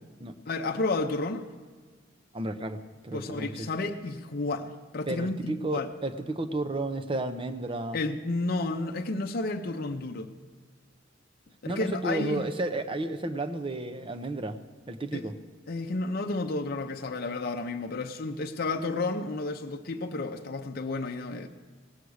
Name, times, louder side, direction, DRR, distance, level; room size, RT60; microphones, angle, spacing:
voice 1, 0.5-1.5 3.1-5.9 7.9-10.3 11.6-12.5 15.1-15.2 15.7-21.5, left 2 dB, 50° left, 0.7 m, -31 dB
voice 2, 2.3-3.7 5.1-8.0 11.7-14.6 14.9-15.3, right 2 dB, 30° right, 0.7 m, -32 dB
18.0 x 8.3 x 6.3 m
head